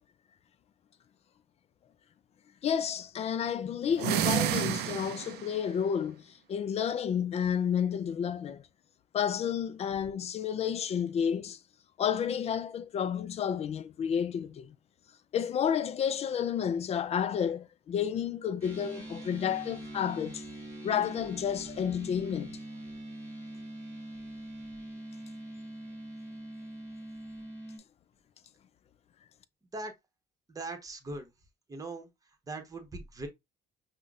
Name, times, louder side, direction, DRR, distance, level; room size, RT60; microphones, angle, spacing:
voice 1, 2.6-8.6 9.1-11.6 12.0-14.8 15.3-20.4 20.8-22.6, left 8 dB, 40° left, 0.4 m, -31 dB
sound 1, 3.9-5.5, right 12 dB, 80° right, 0.4 m, -30 dB
sound 2, 18.6-27.8, right 1 dB, 10° left, 2.0 m, -43 dB
voice 2, 30.5-31.3 31.7-32.1 32.5-33.3, right 2 dB, 20° right, 0.9 m, -40 dB
5.6 x 2.1 x 2.4 m
cardioid pair, 110°, 17 cm